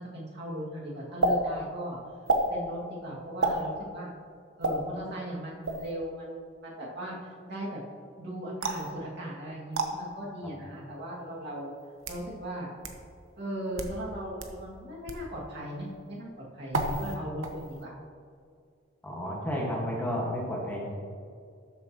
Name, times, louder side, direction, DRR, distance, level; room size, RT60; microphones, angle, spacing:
voice 1, 0.0-2.0 2.5-4.1 4.6-7.8 8.2-11.7 12.1-12.7 13.4-16.3 16.5-17.9, right 1 dB, 60° right, -4 dB, 2.2 m, -38 dB
sound 1, 1.2-1.4 2.3-2.5 3.4-3.6 4.6-4.8 5.6-5.9 8.6-8.9 9.7-9.9 10.8-10.9 11.8-12.2 12.8-12.9 13.6-14.0 14.4-14.5 15.1-15.3 16.7-17.2 17.4-17.8, right 2 dB, 85° right, 1.0 m, -28 dB
voice 2, 19.0-20.9, equal, 10° left, -4 dB, 1.6 m, -32 dB
12.5 x 7.3 x 3.0 m, 2.3 s
head